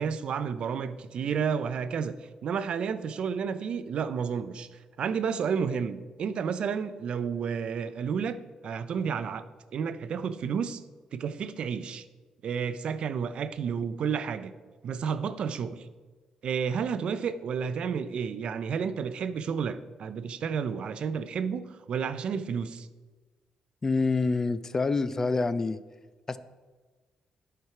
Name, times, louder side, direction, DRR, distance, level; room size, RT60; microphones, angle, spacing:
voice 1, 0.0-2.2 2.4-4.7 5.0-9.4 9.7-10.8 11.1-12.0 12.4-14.5 14.8-15.9 16.4-22.9, right 6 dB, 55° right, 0.4 m, -31 dB
voice 2, 23.8-25.8 26.3-26.4, left 3 dB, 20° left, 0.3 m, -26 dB
11.0 x 4.5 x 4.8 m
cardioid pair, 145°, 2 cm